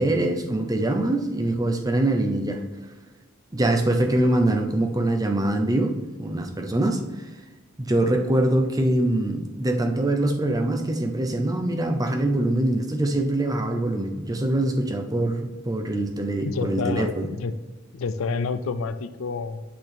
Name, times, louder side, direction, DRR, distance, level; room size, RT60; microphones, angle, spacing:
voice 1, 0.0-2.6 3.5-5.9 6.2-7.0 7.8-17.3, right 1 dB, 20° right, 4 dB, 0.7 m, -23 dB
voice 2, 16.4-17.5 17.9-19.6, left 4 dB, 75° left, 12 dB, 0.4 m, -29 dB
8.6 x 6.0 x 3.5 m, 1.3 s
head